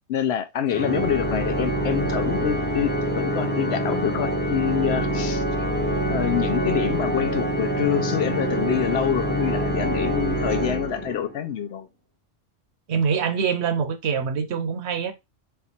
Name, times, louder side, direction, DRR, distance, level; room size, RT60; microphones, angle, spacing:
voice 1, 0.1-5.4 6.1-11.9, left 9 dB, 70° left, 0.8 m, -26 dB
Organ, 0.7-11.5, right 1 dB, 10° left, 0.5 m, -25 dB
voice 2, 12.9-15.1, right 6 dB, 70° right, 0.9 m, -24 dB
4.4 x 2.4 x 4.2 m
omnidirectional pair, 1.2 m